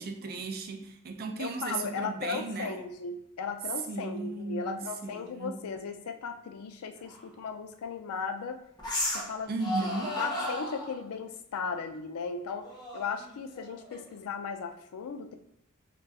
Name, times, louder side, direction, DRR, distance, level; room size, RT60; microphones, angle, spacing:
voice 1, 0.0-2.8 3.9-5.6 9.5-10.2, right 3 dB, 45° right, 0.4 m, -36 dB
voice 2, 1.4-8.6 9.1-9.5 9.8-9.9 10.2-12.7 12.9-15.3, left 5 dB, 90° left, 0.4 m, -36 dB
sound 1, 7.1-7.2 8.8-9.3 9.6-11.0 12.6-14.2, left 1 dB, 20° left, 0.7 m, -34 dB
2.3 x 2.2 x 3.9 m
head